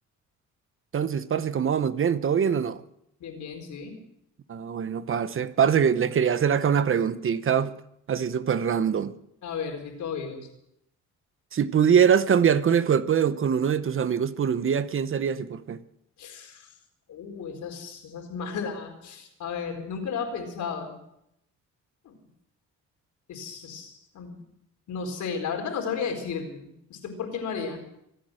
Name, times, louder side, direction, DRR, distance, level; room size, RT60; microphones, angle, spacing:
voice 1, 0.9-2.8 4.5-7.7 8.1-9.1 11.5-15.8, right 7 dB, 45° right, 0.9 m, -23 dB
voice 2, 3.2-3.9 9.4-10.5 16.2-16.7 17.1-21.0 22.0-22.1 23.3-24.4 24.9-27.8, left 6 dB, 75° left, 4.4 m, -34 dB
24.5 x 8.8 x 6.4 m
cardioid pair, 90°, 30 cm